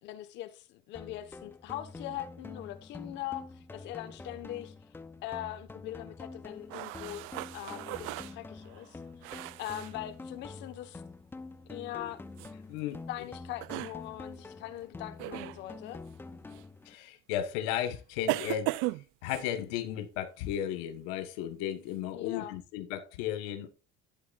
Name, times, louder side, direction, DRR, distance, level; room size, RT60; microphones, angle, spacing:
voice 1, 0.0-3.4 3.7-4.7 5.2-7.2 7.5-9.0 9.6-11.0 11.7-12.2 13.1-16.0 22.1-22.6, left 13 dB, 60° left, 1.2 m, -41 dB
sound 1, 0.9-16.9, left 3 dB, 10° left, 0.6 m, -47 dB
sound 2, 6.7-9.9 12.4-12.5 13.5-14.0 15.2-15.6 16.5-16.6 18.3-19.5, right 20 dB, 75° right, 0.4 m, -36 dB
voice 2, 12.7-13.0 16.8-18.8 19.2-23.7, left 11 dB, 90° left, 1.2 m, -35 dB
11.0 x 8.6 x 2.4 m
cardioid pair, 135°, 21 cm